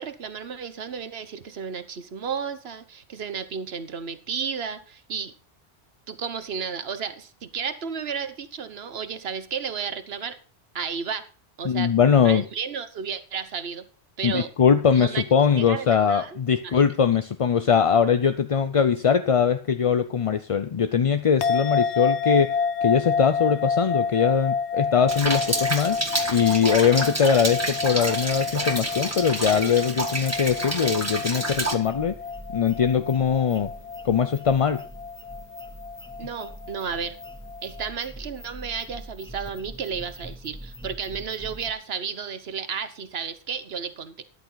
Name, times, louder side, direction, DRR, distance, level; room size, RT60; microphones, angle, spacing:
voice 1, 0.0-5.3 6.1-10.3 10.7-11.3 11.6-11.9 12.2-13.9 14.2-14.5 14.9-15.2 15.6-16.4 16.6-16.8 36.2-37.2 37.6-44.2, right 6 dB, 70° right, 11 dB, 1.3 m, -33 dB
voice 2, 11.6-12.4 14.2-22.5 22.8-26.0 26.3-32.1 32.5-33.7 34.0-34.8, left 7 dB, 40° left, 10 dB, 0.5 m, -21 dB
sound 1, 21.4-37.9, left 5 dB, 85° left, 1.0 m, -29 dB
Rain, 25.1-31.7, right 2 dB, 15° right, 1.6 m, -29 dB
sound 2, 31.8-41.7, equal, 5° left, 0.8 m, -43 dB
13.0 x 10.5 x 3.9 m, 0.39 s
omnidirectional pair, 1.1 m